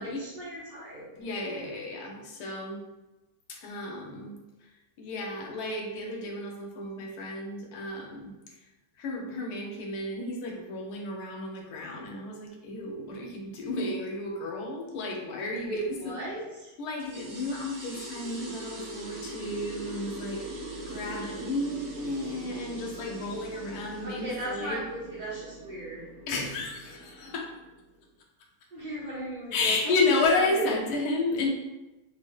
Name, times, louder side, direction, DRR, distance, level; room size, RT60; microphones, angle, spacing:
voice 1, 0.0-1.1 15.5-16.8 24.0-26.0 28.7-30.1 30.4-30.7, right 1 dB, 45° right, -9 dB, 0.6 m, -36 dB
voice 2, 1.2-2.8 3.5-4.4 5.0-8.3 9.0-15.8 16.8-20.4 20.8-24.8 26.3-27.5 29.5-31.5, left 2 dB, 90° left, 0 dB, 1.1 m, -32 dB
sound 1, 17.0-28.0, right 1 dB, 90° right, 1.1 m, -41 dB
3.4 x 2.0 x 3.4 m, 1.0 s
omnidirectional pair, 1.6 m